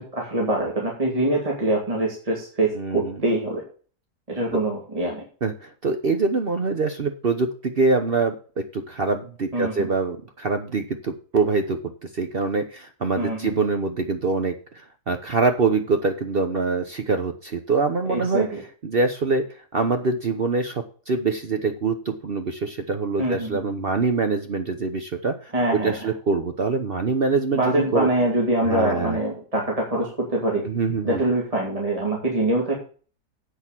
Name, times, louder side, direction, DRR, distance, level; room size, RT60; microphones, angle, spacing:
voice 1, 0.1-3.6 4.3-5.2 9.5-9.9 13.1-13.6 18.1-18.6 23.2-23.6 25.5-26.0 27.5-30.6 31.0-32.8, right 1 dB, 20° right, -2 dB, 2.5 m, -24 dB
voice 2, 2.7-3.2 4.5-4.6 5.4-11.8 12.1-18.5 18.8-19.4 19.7-28.1 28.6-29.2 30.7-31.2, right 4 dB, 45° right, 7 dB, 0.9 m, -24 dB
8.2 x 6.4 x 7.3 m, 0.41 s
omnidirectional pair, 1.7 m